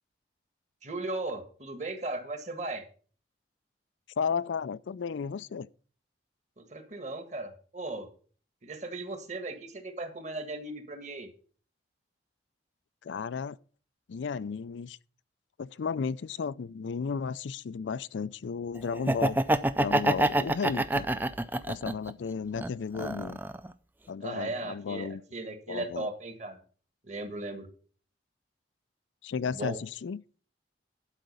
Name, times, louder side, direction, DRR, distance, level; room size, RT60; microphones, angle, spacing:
voice 1, 0.8-2.8 6.6-8.1 8.6-11.3 24.2-26.6 27.0-27.7 29.5-29.8, right 2 dB, 40° right, 1.6 m, -37 dB
voice 2, 4.2-5.7 13.0-13.6 14.1-15.0 15.6-19.4 19.8-21.1 21.7-23.4 24.1-25.2 25.7-26.1 29.2-30.2, left 6 dB, 80° left, 0.4 m, -34 dB
Laughter, 18.9-22.1 22.6-23.7, right 1 dB, 10° right, 0.4 m, -26 dB
11.5 x 4.9 x 6.7 m
head